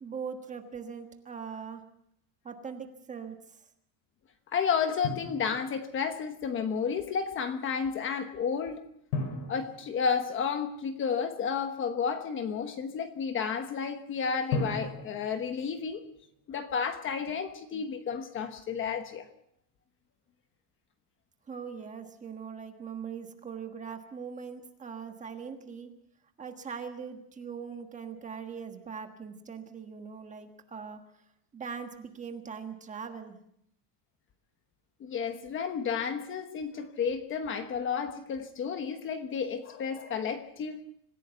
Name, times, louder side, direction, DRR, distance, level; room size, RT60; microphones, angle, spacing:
voice 1, 0.0-1.8 2.4-3.6 21.5-25.9 26.4-31.0 31.5-33.4, right 6 dB, 15° right, 6 dB, 1.4 m, -41 dB
voice 2, 4.5-8.8 9.5-16.0 16.5-19.3 35.0-40.8, left 6 dB, 25° left, 8 dB, 1.2 m, -32 dB
Drum, 5.0-6.1 9.1-11.0 14.5-16.5, left 3 dB, 90° left, 6.2 m, -37 dB
26.0 x 15.5 x 6.9 m, 0.74 s
cardioid pair, 180°, 45 cm